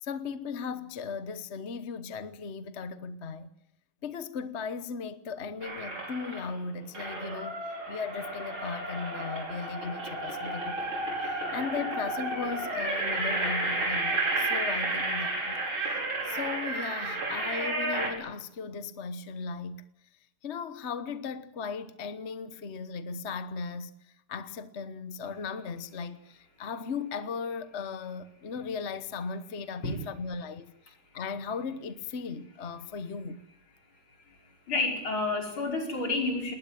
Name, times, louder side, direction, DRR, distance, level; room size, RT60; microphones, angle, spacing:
voice 1, 0.0-3.5 4.0-16.0 16.3-19.8 20.4-23.9 24.3-30.7 31.1-33.4, left 5 dB, 40° left, 1.1 m, -37 dB
sound 1, 5.6-6.5 6.9-18.1, right 2 dB, 70° right, 6.4 m, -32 dB
voice 2, 34.7-36.5, left 3 dB, 70° left, 5.9 m, -30 dB
20.0 x 19.5 x 9.1 m
omnidirectional pair, 2.3 m